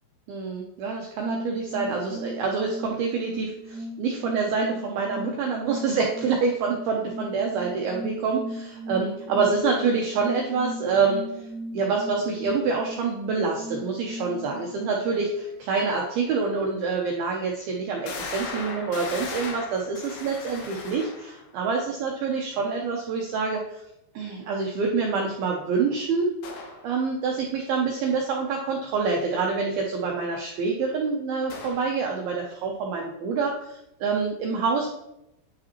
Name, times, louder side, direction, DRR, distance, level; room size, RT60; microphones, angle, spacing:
voice 1, 0.3-11.2 11.7-23.8 24.2-26.3 26.8-34.9, right 4 dB, 85° right, 0 dB, 2.1 m, -26 dB
sound 1, 1.2-15.6, equal, 60° right, 2.2 m, -38 dB
sound 2, 17.1-17.2 18.1-21.5 26.4-26.8 31.5-32.0, left 4 dB, 75° left, 2.8 m, -37 dB
9.4 x 4.9 x 3.0 m, 0.84 s
omnidirectional pair, 5.3 m